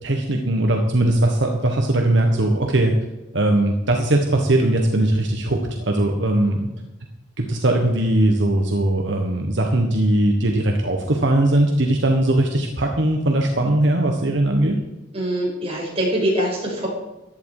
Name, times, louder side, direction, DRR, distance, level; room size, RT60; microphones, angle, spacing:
voice 1, 0.0-2.9 3.3-6.7 7.4-14.8, right 1 dB, 65° right, 2 dB, 1.4 m, -19 dB
voice 2, 15.1-16.9, right 1 dB, 30° right, -3 dB, 5.9 m, -23 dB
15.0 x 11.0 x 4.9 m, 1.0 s
head